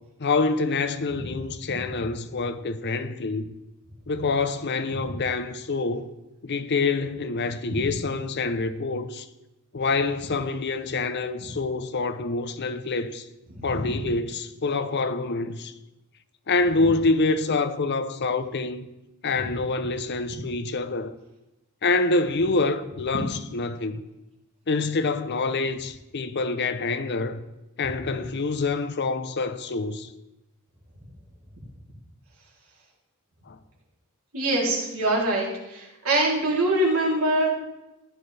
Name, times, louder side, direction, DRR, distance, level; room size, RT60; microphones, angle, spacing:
voice 1, 0.2-3.5 4.1-6.1 6.4-9.3 9.7-13.3 13.6-15.7 16.5-18.9 19.2-21.2 21.8-24.0 24.7-27.4 27.8-30.1 33.5-33.6, left 3 dB, 55° left, 0.7 m, -26 dB
voice 2, 34.3-37.5, right 1 dB, 85° right, 3.4 m, -24 dB
15.0 x 10.5 x 3.4 m
head